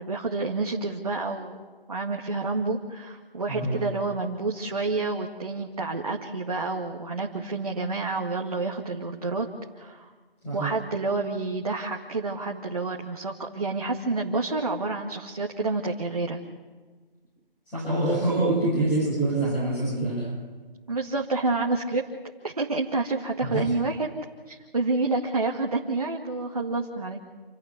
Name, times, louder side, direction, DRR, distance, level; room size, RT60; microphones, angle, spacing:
voice 1, 0.0-1.6 1.9-9.5 9.8-10.1 10.5-16.4 20.9-22.0 22.4-24.1 24.5-27.2, right 3 dB, 40° right, 0 dB, 2.0 m, -29 dB
voice 2, 17.7-20.3 23.4-23.6, right 2 dB, 5° left, -12 dB, 6.9 m, -25 dB
27.5 x 18.0 x 8.2 m, 1.4 s
figure-of-eight pair, 175°, 29 cm